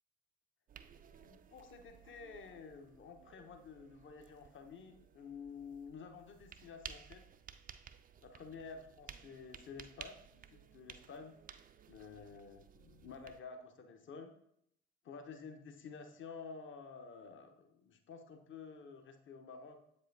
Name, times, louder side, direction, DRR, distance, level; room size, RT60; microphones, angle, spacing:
sound 1, 0.7-13.4, right 8 dB, 25° right, 0.4 m, -56 dB
voice 1, 1.1-7.2 8.2-11.4 11.9-14.3 15.0-19.8, left 5 dB, 40° left, 6 dB, 0.8 m, -51 dB
7.5 x 4.8 x 2.6 m, 0.75 s
figure-of-eight pair, 40°, 32 cm